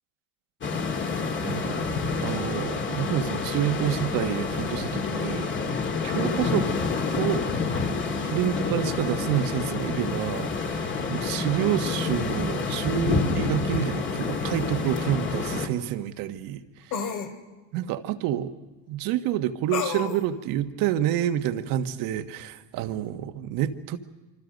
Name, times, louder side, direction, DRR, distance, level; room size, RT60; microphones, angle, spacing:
sound 1, 0.6-15.7, left 4 dB, 30° left, 2.3 m, -28 dB
voice 1, 1.4-1.9 2.2-5.5 6.0-6.7 7.1-7.4 8.2-17.2 17.7-18.5 18.9-24.0, right 12 dB, 65° right, 8 dB, 1.5 m, -28 dB
sound 2, 14.6-14.7 16.9-17.3 19.7-20.2, left 7 dB, 55° left, 2.5 m, -30 dB
27.0 x 25.0 x 5.3 m, 1.1 s
supercardioid pair, 115°, 35 cm